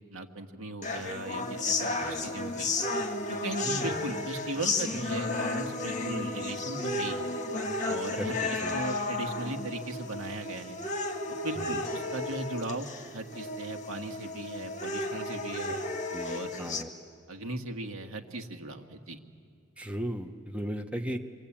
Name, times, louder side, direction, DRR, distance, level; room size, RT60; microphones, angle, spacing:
voice 1, 0.1-2.8 3.3-7.3 7.9-10.8 11.3-12.9 13.1-15.8 16.2-16.7 17.3-19.2, right 2 dB, 85° right, 4 dB, 1.8 m, -38 dB
sound 1, 0.8-16.8, left 2 dB, 35° left, 1.8 m, -33 dB
voice 2, 2.0-2.4 3.6-4.0 8.2-8.9 11.6-11.8 15.7-15.8 16.1-16.9 19.8-21.2, right 1 dB, 5° right, 4 dB, 1.0 m, -37 dB
28.0 x 22.5 x 8.8 m, 2.3 s
head